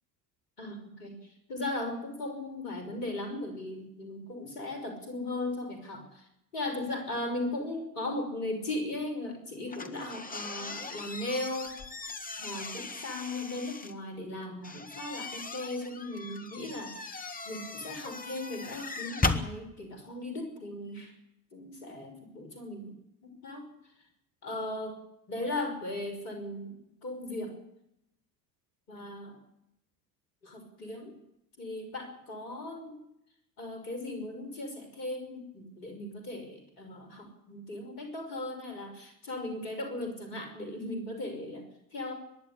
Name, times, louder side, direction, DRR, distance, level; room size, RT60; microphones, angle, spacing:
voice 1, 0.6-1.2 1.5-6.2 6.5-11.7 12.4-21.1 21.5-22.9 23.2-23.7 24.4-25.0 25.3-27.5 28.9-29.4 30.4-31.1 31.6-33.0 33.6-42.1, left 2 dB, 70° left, 6 dB, 6.0 m, -37 dB
sound 1, 9.7-13.9 14.6-19.5, left 3 dB, 15° left, 1.9 m, -37 dB
24.0 x 11.0 x 10.0 m, 0.82 s
figure-of-eight pair, 65°, 49 cm